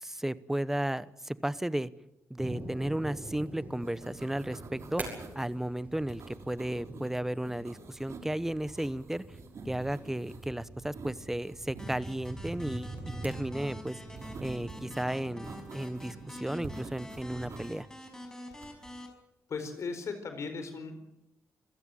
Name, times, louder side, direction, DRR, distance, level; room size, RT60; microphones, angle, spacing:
voice 1, 0.0-1.9 2.3-5.0 5.3-9.2 9.7-12.9 13.2-14.0 14.4-17.9, right 1 dB, 5° right, 17 dB, 0.9 m, -34 dB
sound 1, 2.4-17.6, right 2 dB, 30° right, 7.9 m, -44 dB
sound 2, 3.3-3.5 3.7-5.5 6.1-7.1 7.4-8.3 8.6-10.5 10.8-11.9 14.2-15.0 15.4-16.2 16.6-17.7 18.5-18.9, right 4 dB, 55° right, 4.4 m, -49 dB
sound 3, 11.8-19.1, left 1 dB, 10° left, 5.4 m, -47 dB
voice 2, 18.3-18.8 19.5-21.0, left 4 dB, 55° left, 8 dB, 4.5 m, -38 dB
26.5 x 16.5 x 9.0 m, 0.88 s
cardioid pair, 120°, 6 cm